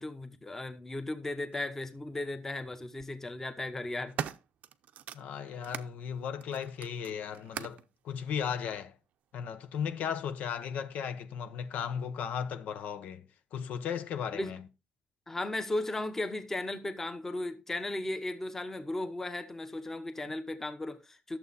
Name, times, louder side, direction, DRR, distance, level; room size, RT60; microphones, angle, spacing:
voice 1, 0.0-4.2 14.3-14.6 15.3-21.4, left 2 dB, 15° left, 1.0 m, -36 dB
sound 1, 1.5-1.6 2.7-3.1 3.6-5.9 6.4-7.9 8.7-8.8, right 9 dB, 65° right, 0.6 m, -41 dB
voice 2, 5.1-9.0 9.3-14.6, left 7 dB, 70° left, 1.0 m, -36 dB
11.5 x 7.3 x 4.1 m
cardioid pair, 170°, 3 cm